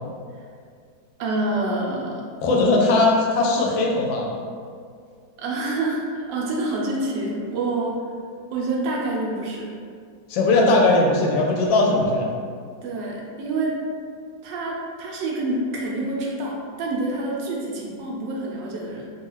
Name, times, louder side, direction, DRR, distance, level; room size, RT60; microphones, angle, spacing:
voice 1, 1.2-2.2 5.4-8.0 8.5-9.8 12.8-13.8 14.4-19.1, right 2 dB, 80° right, -2 dB, 1.2 m, -27 dB
voice 2, 2.4-4.4 10.3-12.3, left 2 dB, 90° left, -1 dB, 1.3 m, -19 dB
3.2 x 2.3 x 3.0 m, 2.1 s
omnidirectional pair, 2.0 m